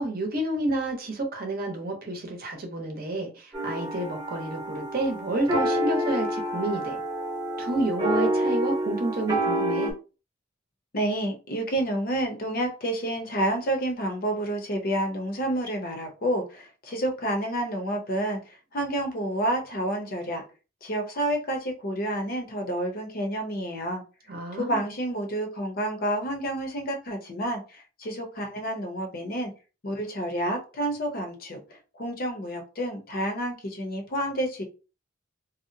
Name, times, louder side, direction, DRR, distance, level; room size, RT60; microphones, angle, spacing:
voice 1, 0.0-7.0 7.6-9.9 24.3-24.8, right 1 dB, 50° right, 0.7 m, -29 dB
sound 1, 3.5-9.9, right 1 dB, 20° right, 0.9 m, -28 dB
voice 2, 10.9-20.4 20.8-24.0 24.6-29.5 29.8-34.6, right 1 dB, 50° left, 0.6 m, -29 dB
2.7 x 2.0 x 2.6 m
head